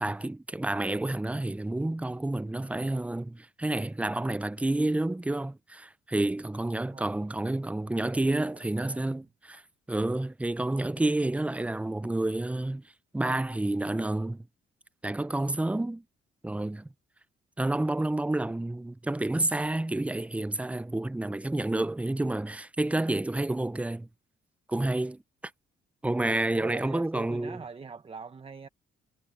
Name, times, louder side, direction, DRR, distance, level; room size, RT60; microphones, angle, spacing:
voice 1, 0.0-9.6 9.9-12.8 13.1-14.5 15.0-16.0 16.4-16.9 17.6-24.1 24.7-25.2 26.0-27.6, right 2 dB, 5° right, 0.5 m, -29 dB
voice 2, 8.2-9.2 26.5-28.7, right 5 dB, 30° right, 1.1 m, -43 dB
cardioid pair, 90°, 20 cm